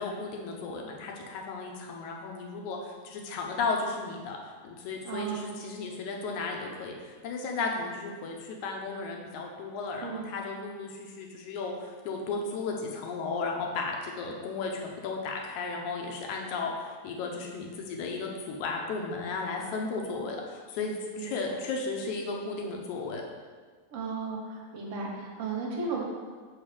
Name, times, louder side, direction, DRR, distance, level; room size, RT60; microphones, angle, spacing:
voice 1, 0.0-4.4 4.6-23.2, left 4 dB, 90° left, 1 dB, 2.3 m, -34 dB
voice 2, 5.0-5.5 10.0-10.3 21.2-21.3 23.9-26.0, right 4 dB, 65° right, -2 dB, 1.9 m, -34 dB
6.3 x 5.0 x 5.0 m, 1.5 s
omnidirectional pair, 3.3 m